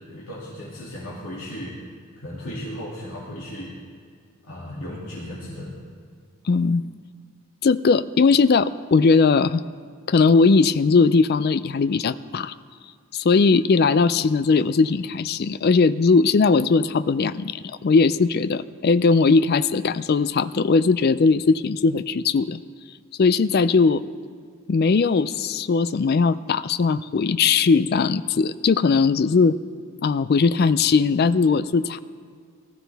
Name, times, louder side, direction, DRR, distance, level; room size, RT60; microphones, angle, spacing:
voice 1, 0.1-1.7 2.2-3.7 4.4-5.7, left 1 dB, 70° left, -7 dB, 2.4 m, -35 dB
voice 2, 6.5-6.8 7.6-9.6 10.1-12.5 13.1-22.6 23.2-24.0 24.7-29.6 30.0-32.0, left 4 dB, 45° left, 15 dB, 0.3 m, -19 dB
19.0 x 13.5 x 3.5 m, 2.2 s
head